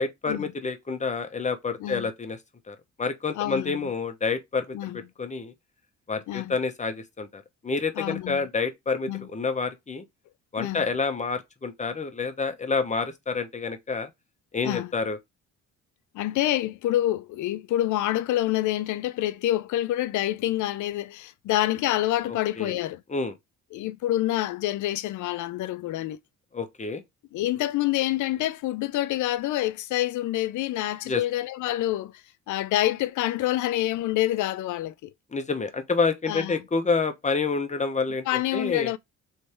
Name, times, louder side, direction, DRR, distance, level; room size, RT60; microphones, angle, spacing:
voice 1, 0.0-2.4 2.7-5.5 6.1-10.0 10.5-14.1 14.5-15.2 22.3-22.8 23.1-23.3 26.5-27.0 31.1-31.2 35.3-38.9, left 4 dB, 25° left, 0.9 m, -28 dB
voice 2, 3.3-3.9 4.7-5.0 6.3-6.6 8.0-8.4 9.1-9.3 10.6-10.9 14.6-14.9 16.1-23.0 23.7-26.2 27.3-32.1 32.5-35.1 36.3-36.6 38.3-39.0, left 14 dB, 75° left, 0.5 m, -27 dB
3.3 x 3.2 x 4.2 m
cardioid pair, 90°, 30 cm